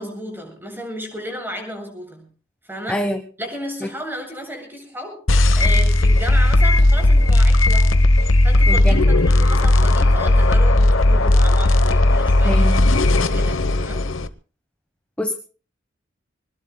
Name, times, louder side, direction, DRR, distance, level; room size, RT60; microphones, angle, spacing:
voice 1, 0.0-2.3 2.6-3.0 3.4-5.2 5.6-14.1, equal, 10° right, 3 dB, 7.5 m, -33 dB
voice 2, 2.9-3.2 8.7-9.0 12.4-12.8 15.2-15.3, left 1 dB, 5° left, 5 dB, 1.3 m, -24 dB
sound 1, 5.3-14.3, left 1 dB, 90° left, 1.0 m, -15 dB
26.0 x 20.0 x 2.3 m, 0.39 s
head